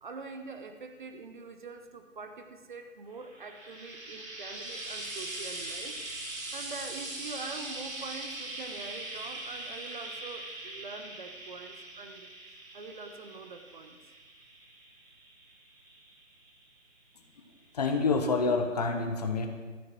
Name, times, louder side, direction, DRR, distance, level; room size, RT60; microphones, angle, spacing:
voice 1, 0.0-6.0 6.2-12.3 12.7-14.1, right 4 dB, 40° right, 7 dB, 1.0 m, -44 dB
Frying (food), 3.2-16.6 17.6-17.7, right 2 dB, 90° right, 3.9 m, -41 dB
voice 2, 17.7-19.5, left 4 dB, 30° left, 6 dB, 1.2 m, -27 dB
15.0 x 14.0 x 4.5 m, 1.4 s
figure-of-eight pair, 160°, 39 cm